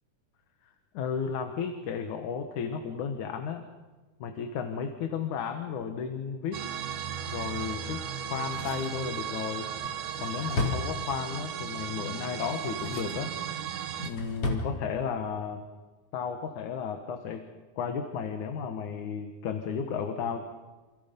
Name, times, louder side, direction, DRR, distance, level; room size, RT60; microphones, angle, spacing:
voice 1, 0.9-3.7 4.2-6.6 7.3-9.7 10.2-13.4 14.0-15.6 16.1-17.5 17.8-20.4, left 6 dB, 70° left, 6 dB, 2.8 m, -33 dB
sound 1, 6.5-14.1, right 9 dB, 70° right, 2.7 m, -36 dB
Drawer open or close, 8.2-11.5 12.4-13.3 13.7-14.7 15.0-15.1, left 3 dB, 45° left, 4.7 m, -35 dB
28.5 x 28.0 x 5.4 m, 1.2 s
omnidirectional pair, 3.7 m